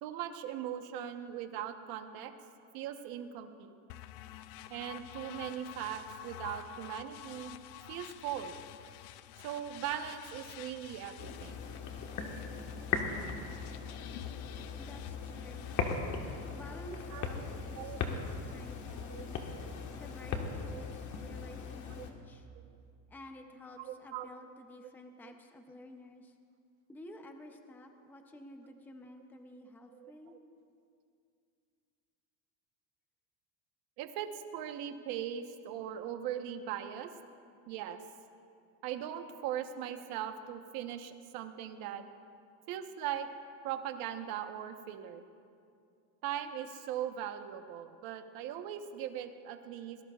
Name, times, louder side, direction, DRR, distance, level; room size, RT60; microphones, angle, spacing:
voice 1, 0.0-2.3 2.7-3.7 4.7-7.6 7.9-8.5 9.4-11.5 15.9-16.1 17.1-17.2 17.7-18.2 19.1-19.2 19.5-19.7 20.7-20.8 21.9-22.0 22.5-22.6 23.8-24.3 30.0-30.4 34.0-37.1 37.7-38.0 38.8-42.0 42.7-43.3 43.6-45.2 46.2-50.0, right 10 dB, 55° right, 7 dB, 1.1 m, -40 dB
sound 1, 3.9-16.0, left 14 dB, 70° left, 0.6 m, -49 dB
sound 2, 11.2-22.1, left 5 dB, 45° left, 1.4 m, -39 dB
voice 2, 14.8-15.7 16.5-19.4 19.9-22.5 23.1-26.4 26.9-30.4, left 1 dB, 5° left, 5 dB, 0.6 m, -52 dB
23.0 x 19.0 x 2.4 m, 2.4 s
cardioid pair, 155°, 42 cm